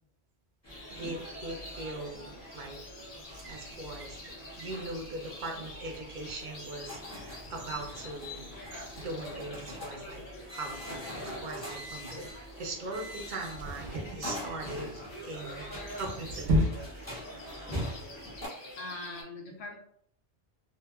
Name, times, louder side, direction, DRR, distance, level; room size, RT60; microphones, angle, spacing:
sound 1, 0.6-18.5, equal, 20° left, 0.6 m, -44 dB
sound 2, 0.7-19.2, left 1 dB, 55° left, 0.9 m, -46 dB
voice 1, 0.9-2.8 3.5-8.5 9.0-10.2 10.5-14.9 15.2-16.7, right 2 dB, 55° right, 1 dB, 0.6 m, -40 dB
sound 3, 3.1-4.9 5.5-5.6 6.2-9.9 10.2-10.3 11.1-11.5 13.5-14.9 15.7-17.3 17.5-17.6, equal, 90° right, 1.0 m, -36 dB
voice 2, 18.8-19.8, left 2 dB, 85° left, -1 dB, 1.0 m, -41 dB
2.7 x 2.4 x 2.3 m, 0.68 s
omnidirectional pair, 1.1 m